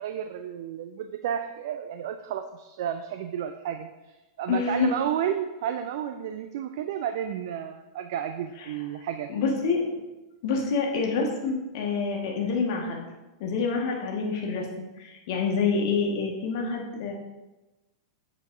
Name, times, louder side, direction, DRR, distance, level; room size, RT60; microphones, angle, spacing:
voice 1, 0.0-9.3, right 9 dB, 55° right, 7 dB, 0.4 m, -32 dB
voice 2, 4.5-4.9 8.6-8.7 9.3-9.9 10.4-13.0 13.4-14.7 15.0-17.1, left 4 dB, 50° left, 0 dB, 1.6 m, -27 dB
7.6 x 7.2 x 2.6 m, 1.1 s
figure-of-eight pair, 95°, 2 cm